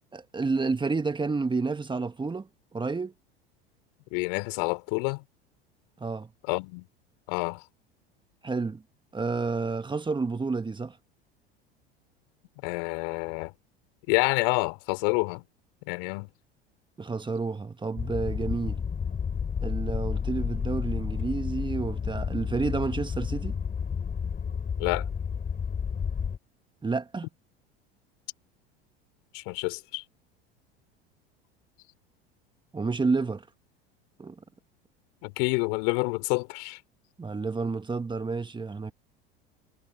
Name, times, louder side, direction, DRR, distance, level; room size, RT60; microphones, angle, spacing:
voice 1, 0.1-3.1 6.0-6.3 8.4-8.8 9.1-11.0 17.0-18.8 19.6-23.6 26.8-27.3 32.7-33.5 34.2-34.3 37.2-38.9, right 4 dB, 15° right, 1.7 m, -30 dB
voice 2, 4.1-5.2 6.5-6.8 7.3-7.6 12.6-13.5 14.1-15.4 15.9-16.3 24.8-25.1 29.3-30.0 35.2-36.8, left 34 dB, 60° left, 4.2 m, -28 dB
sound 1, 18.0-26.4, left 6 dB, 30° left, 6.0 m, -31 dB
hypercardioid pair, 80°, 31 cm